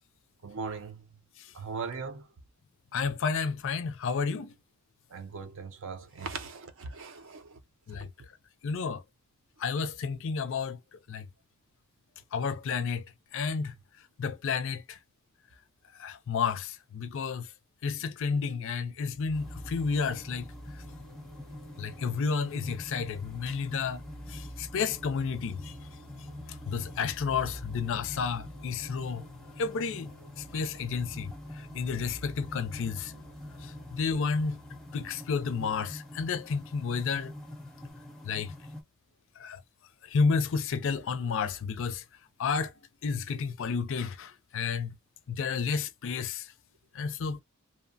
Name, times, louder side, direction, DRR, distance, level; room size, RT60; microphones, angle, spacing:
voice 1, 0.4-1.0 1.5-2.3 5.1-7.6 7.9-8.1, right 4 dB, 65° right, 0.5 m, -39 dB
voice 2, 2.9-4.6 7.9-8.1 8.6-9.0 9.6-10.8 11.1-11.3 12.3-13.1 13.3-13.7 14.2-15.0 16.0-17.5 17.8-20.5 21.8-24.0 24.3-25.7 26.7-29.2 29.6-30.1 30.5-33.1 33.6-34.6 34.9-37.3 38.2-38.5 39.4-39.6 40.1-42.0 42.4-42.7 43.0-45.0 45.3-46.5 46.9-47.4, left 5 dB, 60° left, 0.4 m, -31 dB
sound 1, 19.1-36.5, equal, 80° right, 1.1 m, -49 dB
sound 2, 19.3-38.8, left 1 dB, 5° left, 0.6 m, -46 dB
2.7 x 2.1 x 2.5 m
head